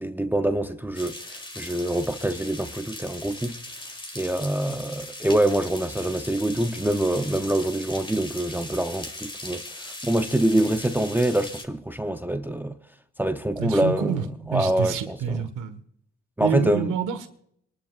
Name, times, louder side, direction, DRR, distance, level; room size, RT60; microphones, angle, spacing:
voice 1, 0.0-3.6 4.2-12.8 13.2-14.2 14.5-15.4 16.4-16.9, right 1 dB, 5° right, 0.7 m, -25 dB
sound 1, 0.9-11.7, left 1 dB, 15° left, 1.8 m, -39 dB
voice 2, 13.6-15.8 16.4-17.3, right 7 dB, 85° right, 1.5 m, -28 dB
27.0 x 11.5 x 2.5 m
cardioid pair, 90°, 30 cm